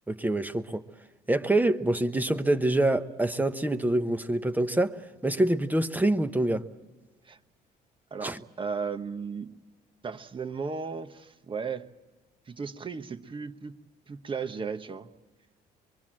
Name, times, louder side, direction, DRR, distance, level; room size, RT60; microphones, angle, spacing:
voice 1, 0.1-0.8 1.3-5.0 5.2-6.7 8.2-8.4, right 1 dB, 10° right, 1.0 m, -25 dB
voice 2, 8.1-9.5 10.0-11.9 12.5-13.8 14.1-15.1, right 5 dB, 30° right, 1.2 m, -35 dB
24.5 x 23.5 x 7.6 m
cardioid pair, 110°, 17 cm